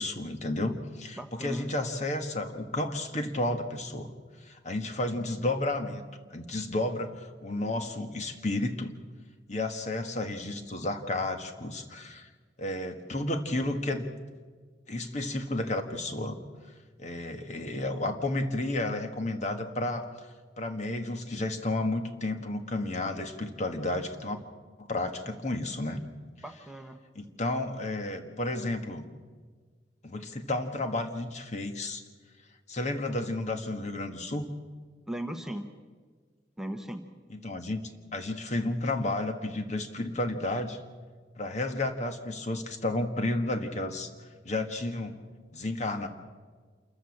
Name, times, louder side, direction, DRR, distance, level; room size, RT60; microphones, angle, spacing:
voice 1, 0.0-4.1 4.4-6.0 6.3-8.9 9.5-12.3 12.6-14.1 14.9-16.3 17.0-20.1 20.6-24.4 24.8-26.0 27.1-29.0 30.0-32.0 32.7-34.5 37.3-37.8 38.1-40.8 41.4-44.1 44.4-45.2 45.5-46.1, left 2 dB, 40° left, 6 dB, 1.6 m, -32 dB
voice 2, 1.2-1.7 26.4-27.0 35.1-35.7 36.6-37.1, right 1 dB, 5° right, 5 dB, 1.0 m, -38 dB
27.5 x 14.5 x 7.3 m, 1.5 s
head